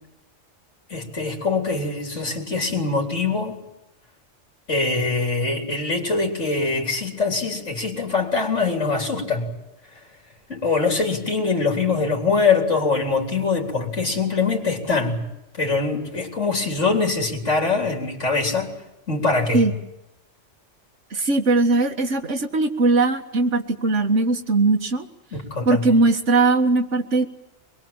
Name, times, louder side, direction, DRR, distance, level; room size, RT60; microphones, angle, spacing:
voice 1, 0.9-3.6 4.7-9.5 10.5-15.2 15.6-18.7 19.1-19.6 25.3-25.9, left 4 dB, 75° left, 2 dB, 4.0 m, -23 dB
voice 2, 21.1-25.1 25.7-27.3, right 3 dB, 75° right, 5 dB, 2.2 m, -19 dB
24.0 x 21.5 x 8.9 m, 0.92 s
omnidirectional pair, 1.2 m